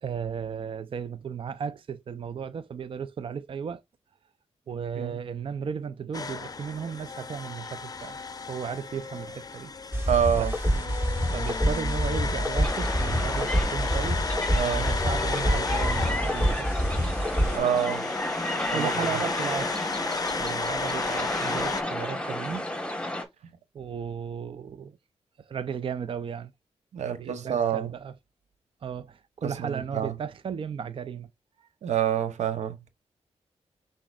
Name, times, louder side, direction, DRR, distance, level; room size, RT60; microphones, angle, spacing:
voice 1, 0.0-3.8 4.7-8.2 8.5-9.7 10.3-10.5 11.3-14.3 14.7-16.8 18.7-19.8 20.4-22.7 23.7-25.0 25.4-26.5 27.1-28.1 28.8-31.3 31.6-31.7, right 7 dB, 50° right, 0.4 m, -35 dB
sound 1, 6.1-21.8, left 4 dB, 35° left, 0.5 m, -34 dB
sound 2, 9.9-17.6, equal, 20° right, 1.4 m, -27 dB
voice 2, 10.1-10.5 14.5-14.9 17.5-18.1 18.7-18.9 26.9-27.9 29.4-30.1 31.8-32.8, right 9 dB, 90° right, 0.7 m, -27 dB
sound 3, 12.6-23.2, left 1 dB, 10° left, 1.2 m, -32 dB
6.1 x 3.7 x 2.3 m
cardioid pair, 75°, 12 cm